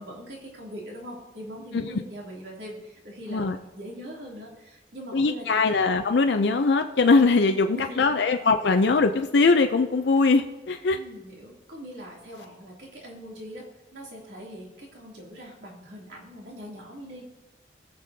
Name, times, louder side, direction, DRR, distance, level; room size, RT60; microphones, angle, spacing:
voice 1, 0.0-5.6 7.7-8.2 10.9-13.7 13.9-17.2, equal, 80° right, -2 dB, 2.8 m, -41 dB
voice 2, 5.1-11.0, left 3 dB, 80° left, 6 dB, 0.5 m, -21 dB
19.5 x 6.8 x 2.8 m, 1.1 s
head